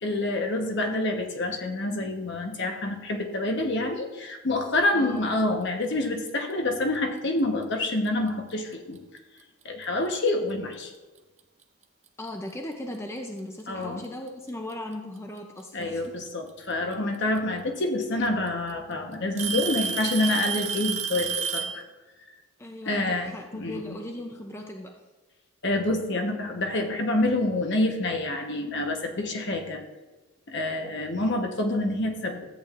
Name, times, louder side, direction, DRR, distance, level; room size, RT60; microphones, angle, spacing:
voice 1, 0.0-9.0 9.6-10.9 13.7-14.0 15.7-21.8 22.9-24.0 25.6-29.8 30.5-32.5, left 2 dB, 55° left, 3 dB, 1.1 m, -27 dB
voice 2, 4.9-5.3 12.2-16.2 22.6-25.0, left 1 dB, 10° left, 3 dB, 0.5 m, -38 dB
Alarm / Tick-tock, 7.8-8.1 9.0-9.1 9.8-9.9 11.6-11.7 12.9-13.0 14.3-14.7 16.5-16.6 17.8-17.9 18.3-18.7 19.4-21.8, right 6 dB, 30° right, 0.6 m, -30 dB
13.5 x 8.4 x 2.5 m, 1.2 s
head